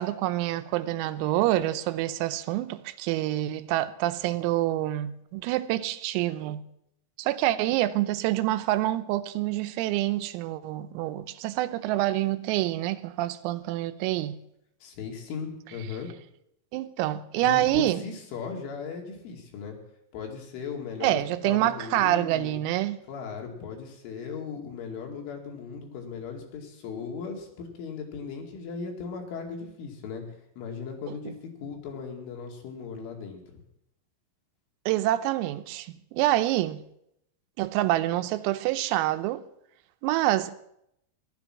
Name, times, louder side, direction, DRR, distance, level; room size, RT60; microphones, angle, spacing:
voice 1, 0.0-6.7 7.2-14.4 16.7-18.0 21.0-23.0 34.9-36.8 37.6-39.4 40.0-40.5, right 15 dB, 90° right, 3.5 m, -27 dB
voice 2, 14.8-16.1 17.4-19.8 20.1-22.5 23.1-31.3 31.6-33.4, left 6 dB, 70° left, 4.6 m, -37 dB
15.5 x 12.0 x 5.9 m
omnidirectional pair, 6.0 m